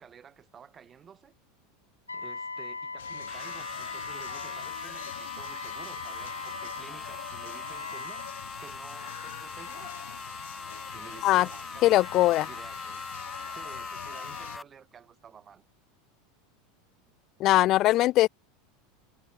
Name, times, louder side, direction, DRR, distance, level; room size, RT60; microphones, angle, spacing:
voice 1, 0.0-1.3 2.1-8.2 8.6-9.9 10.9-12.0 12.4-13.1 13.5-15.6, right 7 dB, 30° right, 2.0 m, -51 dB
Wind instrument woodwind instrument, 2.1-8.3, left 3 dB, 85° left, 1.2 m, -40 dB
sound 1, 3.0-14.6, left 13 dB, 65° left, 2.3 m, -45 dB
sound 2, 3.3-14.6, left 4 dB, 15° left, 0.7 m, -41 dB
voice 2, 11.8-12.5 17.4-18.3, left 16 dB, 45° left, 0.4 m, -21 dB
figure-of-eight pair, 80°, 0 cm